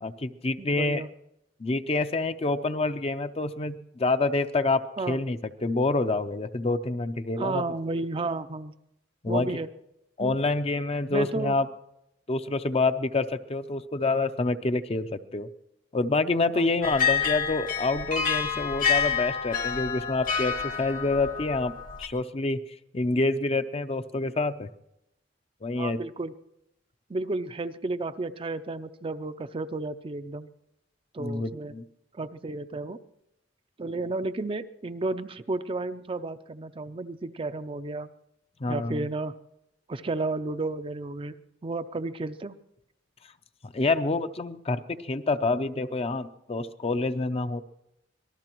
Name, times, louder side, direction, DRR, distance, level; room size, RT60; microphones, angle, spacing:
voice 1, 0.0-1.0 1.6-7.6 9.2-9.5 10.2-11.7 12.3-15.5 15.9-21.7 22.0-22.6 22.9-24.7 25.6-26.0 31.2-31.8 38.6-39.0 43.6-47.6, left 3 dB, 35° left, 10 dB, 0.6 m, -27 dB
voice 2, 0.6-1.1 5.0-5.2 7.4-8.7 9.3-9.7 10.2-10.4 11.1-11.6 16.5-16.7 25.8-26.3 27.1-30.5 31.1-31.7 32.1-33.0 33.8-38.1 38.7-39.3 39.9-41.3 41.6-42.5, right 3 dB, 30° right, 11 dB, 0.5 m, -32 dB
sound 1, 16.8-22.1, left 7 dB, 50° left, 1.1 m, -28 dB
25.5 x 19.0 x 3.0 m, 0.86 s
head